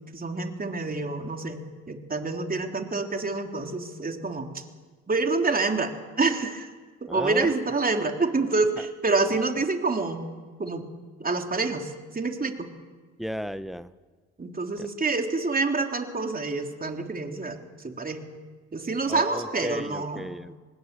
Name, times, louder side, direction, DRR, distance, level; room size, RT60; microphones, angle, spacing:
voice 1, 0.1-1.6 1.9-4.5 5.1-6.7 7.0-10.3 10.6-10.9 11.2-12.7 14.4-17.6 17.8-18.2 18.7-20.3, right 3 dB, 25° right, 4 dB, 3.4 m, -27 dB
voice 2, 7.1-7.5 13.2-13.9 14.8-14.9 19.1-20.6, equal, ahead, 14 dB, 1.2 m, -34 dB
25.5 x 19.5 x 7.0 m, 1.4 s
hypercardioid pair, 55°, 33 cm